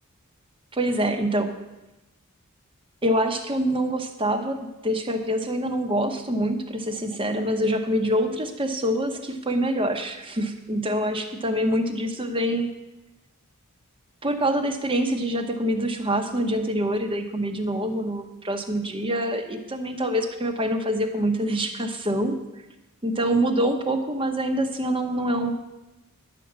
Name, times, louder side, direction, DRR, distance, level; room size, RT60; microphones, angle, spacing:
voice 1, 0.7-1.5 3.0-12.7 14.2-22.4 23.0-25.5, equal, 25° right, 6 dB, 0.9 m, -25 dB
10.5 x 6.0 x 7.4 m, 1.0 s
head